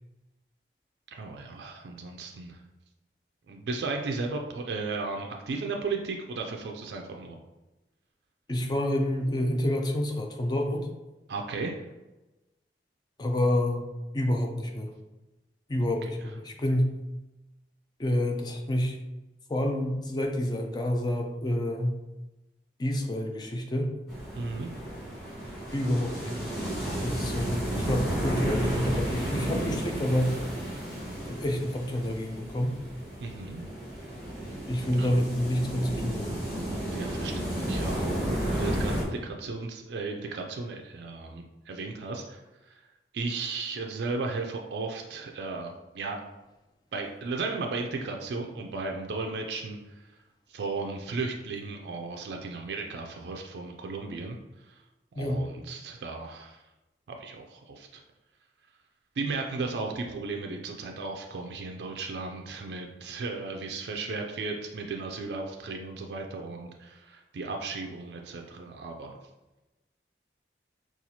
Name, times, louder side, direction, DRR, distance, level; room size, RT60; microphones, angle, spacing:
voice 1, 1.1-2.6 3.5-7.4 11.3-11.8 16.2-16.3 24.4-24.7 33.2-33.6 35.0-35.1 36.9-38.2 38.5-42.4 42.7-42.8 43.1-46.2 46.9-49.8 50.5-54.4 54.7-54.8 55.2-56.6 57.1-58.0 59.2-69.2, right 3 dB, 70° right, 2 dB, 0.4 m, -35 dB
voice 2, 8.5-10.9 13.2-13.9 14.1-14.9 15.7-16.9 18.0-19.0 19.5-22.0 22.8-23.9 25.7-26.5 27.0-30.4 31.3-32.8 34.7-36.4 55.2-55.5, left 1 dB, 25° left, 2 dB, 0.4 m, -28 dB
sound 1, 24.1-39.0, right 1 dB, 5° left, 1.5 m, -32 dB
4.2 x 2.4 x 2.7 m, 1.0 s
head